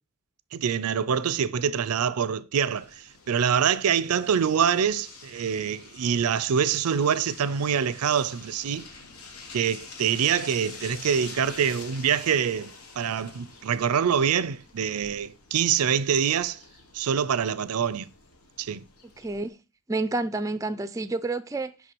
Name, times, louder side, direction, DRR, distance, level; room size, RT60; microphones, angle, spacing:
voice 1, 0.5-8.9 9.5-16.6 16.9-18.1 18.6-18.8, right 7 dB, 90° right, 0.5 m, -25 dB
sound 1, 2.6-19.5, left 4 dB, 90° left, 1.4 m, -47 dB
voice 2, 19.2-19.6 19.9-21.9, right 2 dB, 15° right, 0.3 m, -29 dB
5.9 x 5.6 x 4.5 m
head